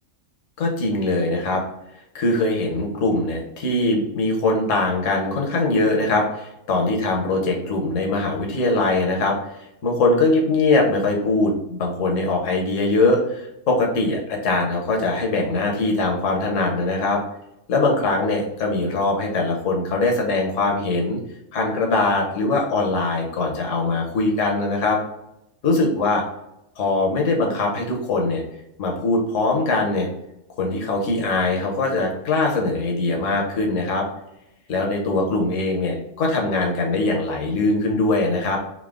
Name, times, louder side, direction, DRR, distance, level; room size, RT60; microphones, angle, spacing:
voice 1, 0.6-1.6 2.1-9.4 9.8-17.2 17.7-21.2 21.5-25.0 25.6-26.2 26.8-28.4 28.8-30.1 30.6-34.0 34.7-38.6, left 2 dB, 65° left, 1 dB, 1.3 m, -22 dB
3.9 x 2.8 x 3.5 m, 0.86 s
omnidirectional pair, 1.5 m